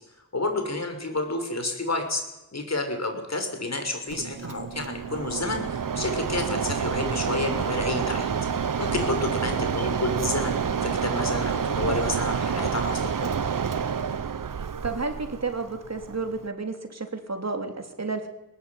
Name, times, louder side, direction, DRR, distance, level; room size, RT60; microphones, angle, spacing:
voice 1, 0.3-2.2 2.5-8.3 8.8-13.1, left 2 dB, 50° left, 5 dB, 6.1 m, -30 dB
Mechanisms, 4.1-16.5, right 7 dB, 70° right, 1.1 m, -28 dB
voice 2, 14.6-18.3, right 3 dB, 50° right, 6 dB, 3.6 m, -32 dB
21.0 x 19.5 x 9.8 m, 0.98 s
wide cardioid pair, 80°, 34 cm